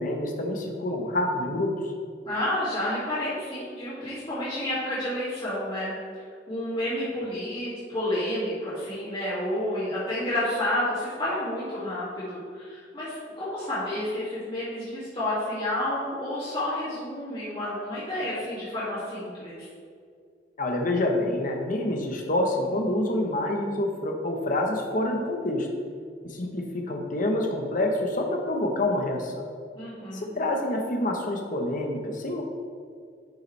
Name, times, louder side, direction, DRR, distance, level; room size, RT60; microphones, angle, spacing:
voice 1, 0.0-1.7 20.6-25.7 26.2-29.4 30.1-32.4, left 1 dB, 45° left, 1 dB, 1.0 m, -27 dB
voice 2, 2.3-5.9 6.5-19.7 29.8-30.3, left 1 dB, 30° left, -11 dB, 2.1 m, -30 dB
10.5 x 5.6 x 3.3 m, 2.1 s
head